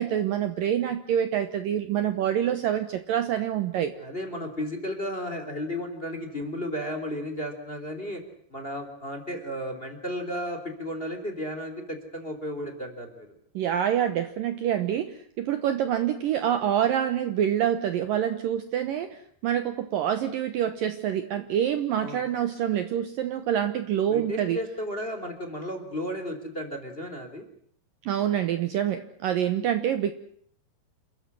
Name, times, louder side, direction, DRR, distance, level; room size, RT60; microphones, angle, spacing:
voice 1, 0.0-3.9 13.5-24.6 28.0-30.1, right 10 dB, 70° right, 10 dB, 2.4 m, -26 dB
voice 2, 4.0-8.2 8.5-13.3 22.0-22.2 24.1-27.4, equal, 15° left, 6 dB, 3.0 m, -34 dB
28.5 x 14.0 x 9.8 m, 0.65 s
omnidirectional pair, 4.9 m